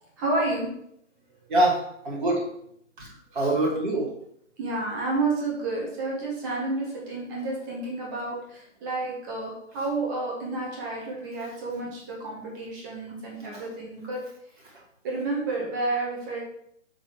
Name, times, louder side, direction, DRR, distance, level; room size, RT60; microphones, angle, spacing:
voice 1, 0.2-0.7 2.1-2.4 4.6-14.2 15.0-16.4, right 2 dB, 15° right, -3 dB, 1.4 m, -30 dB
voice 2, 1.5-2.4 3.0-4.1 13.5-13.7, right 1 dB, 40° right, -3 dB, 2.7 m, -25 dB
7.0 x 4.1 x 4.9 m, 0.71 s
figure-of-eight pair, 140°, 38 cm